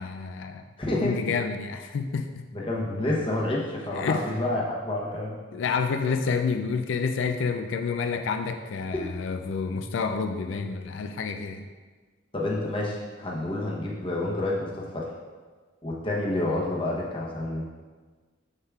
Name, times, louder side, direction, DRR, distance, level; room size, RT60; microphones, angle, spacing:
voice 1, 0.0-2.4 3.9-4.2 5.5-11.6, left 5 dB, 70° left, 7 dB, 0.3 m, -29 dB
voice 2, 0.8-1.2 2.5-5.4 8.9-9.1 10.5-10.6 12.3-15.1 15.8-17.7, left 1 dB, 25° left, -4 dB, 0.8 m, -29 dB
7.2 x 6.5 x 2.3 m, 1.4 s
head